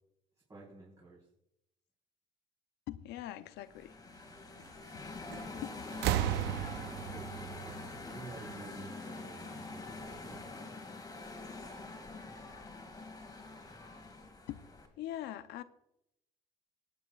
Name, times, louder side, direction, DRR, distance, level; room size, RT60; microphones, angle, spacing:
voice 1, 0.5-1.3 7.0-7.3 7.6-7.8 8.1-10.7, right 3 dB, 20° right, 4.0 m, -50 dB
voice 2, 2.9-4.0 4.6-4.7 4.9-5.0 5.5-5.8 14.5-14.6 15.0-15.6, left 13 dB, 85° left, 0.7 m, -42 dB
sound 1, 3.5-14.9, left 3 dB, 20° left, 2.1 m, -46 dB
sound 2, 5.3-5.6 5.9-8.7 9.8-9.9, right 11 dB, 85° right, 0.7 m, -35 dB
21.0 x 9.2 x 2.4 m
cardioid pair, 110°, 17 cm